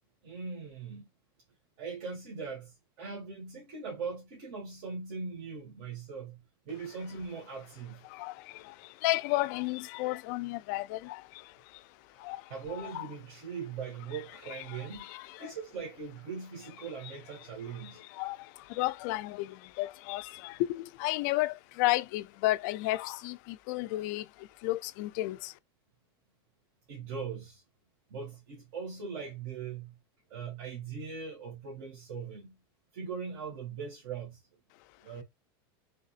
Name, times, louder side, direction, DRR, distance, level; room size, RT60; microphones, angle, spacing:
voice 1, 0.2-1.1 1.8-8.0 12.3-15.0 15.4-18.0 26.9-27.6 28.1-30.0 30.3-32.6 32.9-34.4 35.0-35.2, right 5 dB, 55° right, 1.9 m, -40 dB
voice 2, 9.0-11.2 12.2-12.4 12.7-13.1 14.5-15.5 18.2-18.4 18.8-19.5 19.8-24.2 24.6-25.5, left 18 dB, 50° left, 0.4 m, -32 dB
4.0 x 3.4 x 2.4 m
supercardioid pair, 160°, 12 cm